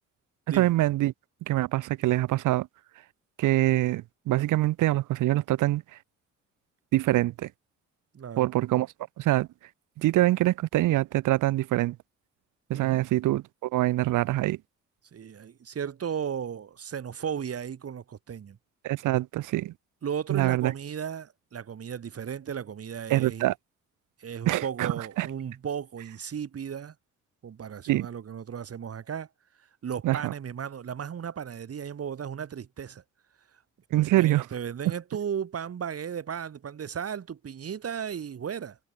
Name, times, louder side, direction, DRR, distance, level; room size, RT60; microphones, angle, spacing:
voice 1, 0.5-1.1 1.5-2.7 3.4-5.8 6.9-7.5 8.4-8.9 9.2-9.5 10.0-12.0 12.7-14.6 18.8-19.7 20.3-20.7 23.1-23.5 24.5-25.3 27.9-28.1 30.0-30.3 33.9-34.5, right 16 dB, 85° right, 1.4 m, -24 dB
voice 2, 8.1-8.5 12.7-13.0 15.1-18.6 20.0-23.5 24.2-26.9 27.4-29.3 29.6-33.0 33.9-38.8, right 8 dB, 50° right, 4.7 m, -35 dB
cardioid pair, 90°, 30 cm